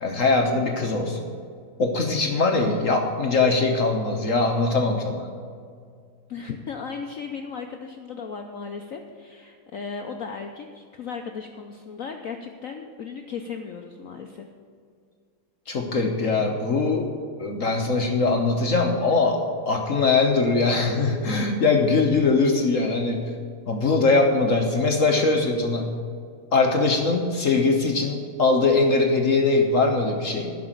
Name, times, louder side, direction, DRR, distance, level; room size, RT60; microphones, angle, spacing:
voice 1, 0.0-1.2 1.8-5.3 15.7-17.1 17.4-19.4 19.7-23.3 23.7-25.9 26.5-30.5, left 3 dB, 50° left, 3 dB, 1.0 m, -21 dB
voice 2, 6.3-14.5, left 5 dB, 80° left, 4 dB, 0.7 m, -36 dB
11.5 x 6.1 x 8.9 m, 2.2 s
omnidirectional pair, 2.3 m